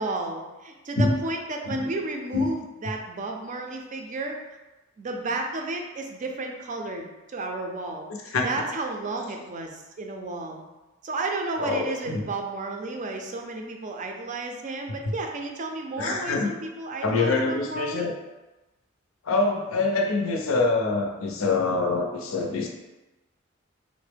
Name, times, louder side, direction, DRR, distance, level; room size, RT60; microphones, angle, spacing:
voice 1, 0.0-4.4 5.0-8.1 8.4-10.6 11.0-18.1, right 2 dB, 40° right, 3 dB, 0.4 m, -32 dB
voice 2, 11.6-12.2 16.0-16.5 17.0-18.1 19.3-22.7, left 3 dB, 85° left, 2 dB, 0.5 m, -25 dB
3.6 x 2.0 x 3.3 m, 1.1 s
head